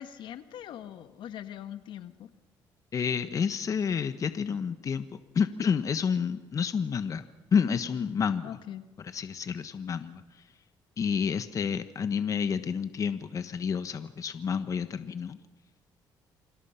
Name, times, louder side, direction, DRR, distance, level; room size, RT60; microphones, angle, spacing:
voice 1, 0.0-2.3 8.4-8.8, left 10 dB, 70° left, 10 dB, 1.5 m, -42 dB
voice 2, 2.9-7.2 7.5-8.5 9.0-10.2 11.0-15.4, left 6 dB, 40° left, 10 dB, 1.3 m, -29 dB
28.5 x 25.5 x 5.8 m, 1.1 s
cardioid pair, 120°, 8 cm